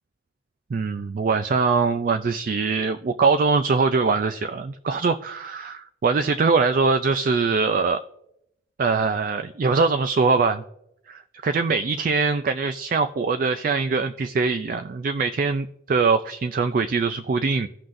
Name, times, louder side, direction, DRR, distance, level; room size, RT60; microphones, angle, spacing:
voice 1, 0.7-8.0 8.8-10.6 11.1-17.7, right 4 dB, 45° right, 9 dB, 0.3 m, -22 dB
16.5 x 5.8 x 2.5 m, 0.78 s
head